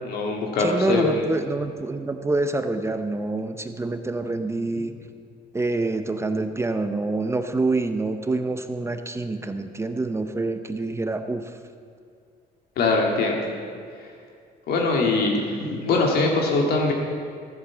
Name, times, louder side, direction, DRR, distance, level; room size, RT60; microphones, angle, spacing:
voice 1, 0.0-1.2 12.8-13.4 14.7-16.9, left 3 dB, 65° left, 0 dB, 2.1 m, -22 dB
voice 2, 0.6-4.9 5.5-11.5, right 2 dB, 15° right, 8 dB, 0.7 m, -26 dB
14.5 x 8.0 x 7.2 m, 2.3 s
cardioid pair, 110°, 17 cm